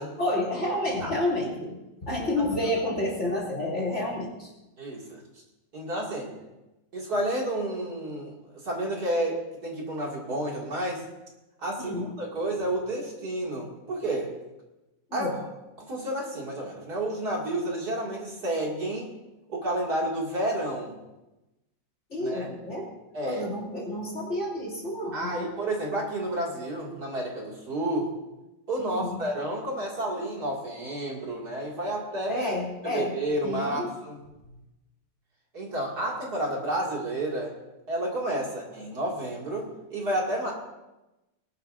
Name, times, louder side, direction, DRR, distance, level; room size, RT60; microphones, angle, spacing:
voice 1, 0.2-4.5 11.8-12.1 15.1-15.4 22.1-22.9 23.2-25.5 28.8-29.1 32.3-33.1 33.4-33.9, left 1 dB, 40° left, -4 dB, 3.0 m, -30 dB
voice 2, 4.8-5.2 5.7-6.3 6.9-8.3 8.6-11.0 11.6-14.3 15.1-15.5 15.8-19.1 19.5-20.9 22.2-22.5 23.1-23.5 25.1-28.1 28.7-32.5 32.8-34.2 35.5-37.5 37.9-40.5, right 1 dB, 55° right, -2 dB, 2.9 m, -30 dB
20.5 x 11.5 x 2.6 m, 1.0 s
omnidirectional pair, 2.0 m